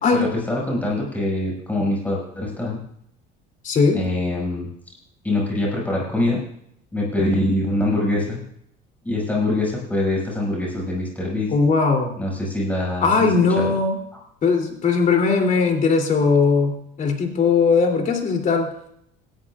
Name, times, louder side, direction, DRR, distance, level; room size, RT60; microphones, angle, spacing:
voice 1, 0.2-2.8 3.9-4.7 5.2-6.4 6.9-8.4 9.0-11.5 12.2-13.3 13.6-13.7, left 1 dB, 10° left, -3 dB, 6.1 m, -24 dB
voice 2, 3.6-4.0 11.5-12.2 13.0-14.0 14.4-18.7, left 4 dB, 40° left, 2 dB, 3.1 m, -19 dB
18.5 x 13.5 x 2.5 m, 0.70 s
cardioid pair, 125°, 20 cm